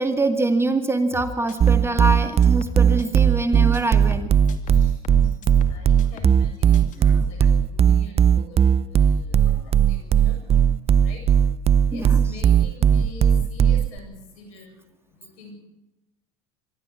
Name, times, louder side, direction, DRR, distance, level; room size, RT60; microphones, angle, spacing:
voice 1, 0.0-4.3 7.0-7.2 11.9-12.2, right 2 dB, 15° right, 8 dB, 2.1 m, -24 dB
sound 1, 1.1-3.5 3.7-6.5 6.7-7.0, left 5 dB, 50° left, 2.5 m, -37 dB
sound 2, 1.6-14.0, right 8 dB, 35° right, 0.7 m, -17 dB
voice 2, 4.7-5.0 5.7-7.4 7.7-10.4 11.0-11.2 11.9-14.7 15.2-15.5, left 2 dB, 75° left, 4 dB, 7.8 m, -43 dB
24.5 x 13.0 x 8.4 m, 0.92 s
hypercardioid pair, 80°, 17 cm